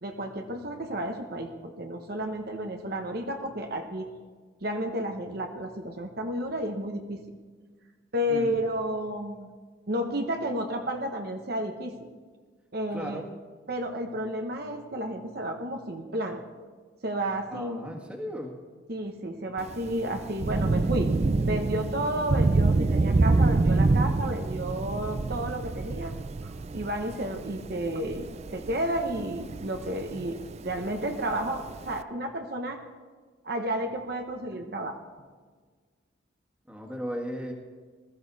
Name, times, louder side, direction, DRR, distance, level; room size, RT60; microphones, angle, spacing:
voice 1, 0.0-4.1 4.6-7.2 8.1-9.5 9.9-12.0 12.7-13.2 13.7-16.4 17.0-17.8 18.9-21.1 21.4-26.1 26.4-30.4 30.6-32.8 33.4-35.0, right 1 dB, 50° right, 4 dB, 1.0 m, -32 dB
voice 2, 12.9-13.3 17.5-18.6 36.7-37.5, equal, 5° right, 1 dB, 1.7 m, -36 dB
Thunder / Rain, 19.6-32.0, right 3 dB, 35° right, 0.4 m, -27 dB
20.0 x 14.0 x 4.1 m, 1.5 s
head